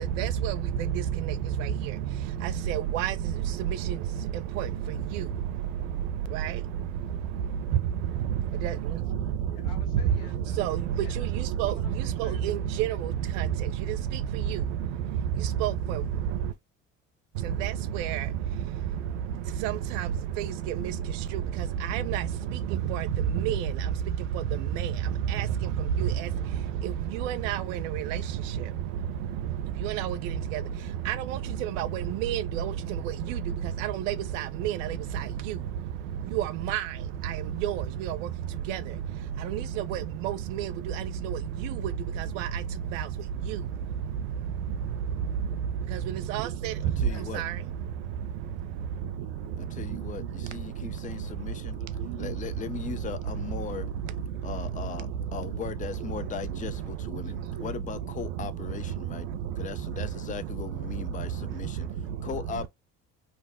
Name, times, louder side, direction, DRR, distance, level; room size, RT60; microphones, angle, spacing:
voice 1, 0.2-0.6 1.3-1.4 2.4-3.1 4.6-4.7 5.2-5.3 6.4-6.5 8.6-8.7 10.6-10.8 11.6-11.7 12.2-13.0 13.4-13.5 14.5-14.6 15.6-16.0 17.6-18.2 19.6-20.1 21.9-22.2 22.9-23.1 23.4-23.7 25.3-25.5 26.0-26.1 27.1-27.6 27.9-28.2 29.8-30.1 30.5-30.6 31.1-31.2 31.8-32.7 33.8-34.9 35.5-35.6 36.3-36.8 37.6-38.2 38.7-38.8 39.5-39.6 39.9-40.0 40.2-40.7 42.4-42.5 46.3-46.7 47.3-47.5, right 11 dB, 80° right, 0.5 m, -29 dB
voice 2, 9.4-10.6 11.0-11.3 11.7-12.4 12.8-13.0 47.1-47.3, left 6 dB, 70° left, 1.1 m, -51 dB
voice 3, 46.8-47.4 49.6-51.8 52.2-53.9 54.4-59.3 59.6-61.9 62.2-62.7, left 7 dB, 20° left, 0.4 m, -38 dB
2.6 x 2.0 x 3.4 m
hypercardioid pair, 60°, 38 cm